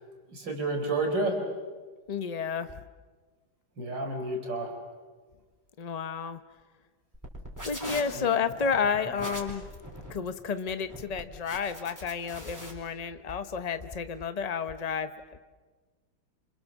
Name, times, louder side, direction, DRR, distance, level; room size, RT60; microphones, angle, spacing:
voice 1, 0.3-1.4 3.8-4.7 8.1-8.3, right 2 dB, 65° right, 3 dB, 4.8 m, -30 dB
voice 2, 2.1-2.7 5.8-6.4 7.6-9.7 10.1-15.4, left 6 dB, 60° left, 10 dB, 0.4 m, -31 dB
sound 1, 7.1-12.7, equal, 10° right, 4.3 m, -41 dB
29.0 x 27.0 x 7.3 m, 1.4 s
omnidirectional pair, 2.1 m